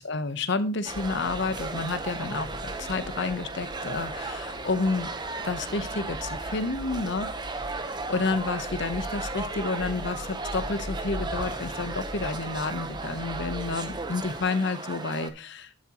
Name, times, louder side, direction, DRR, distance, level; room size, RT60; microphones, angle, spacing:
voice 1, 0.0-5.1 5.4-7.3 7.8-15.7, left 3 dB, 60° left, 11 dB, 0.8 m, -30 dB
sound 1, 0.9-14.5, equal, 80° left, 4.2 m, -41 dB
sound 2, 0.9-15.3, right 3 dB, 20° right, 0.8 m, -35 dB
11.5 x 7.3 x 2.9 m, 0.28 s
head